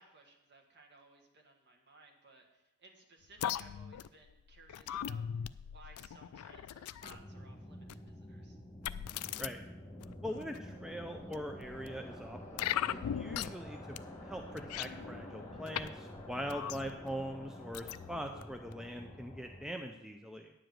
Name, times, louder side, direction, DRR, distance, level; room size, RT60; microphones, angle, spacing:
voice 1, 0.0-8.6, right 3 dB, 50° right, 1 dB, 1.7 m, -60 dB
sound 1, 3.4-7.2 7.9-8.1 8.8-9.5 10.0-10.6 11.3-11.9 12.6-13.7 13.9-14.0 14.4-15.9 16.1-17.1 17.7-18.4 18.7-18.8, left 10 dB, 80° left, 0.3 m, -39 dB
sound 2, 7.0-19.7, left 1 dB, 15° left, 1.5 m, -48 dB
voice 2, 10.2-13.8 14.2-20.5, equal, 5° right, 4 dB, 0.4 m, -42 dB
10.0 x 5.0 x 7.6 m, 0.90 s
head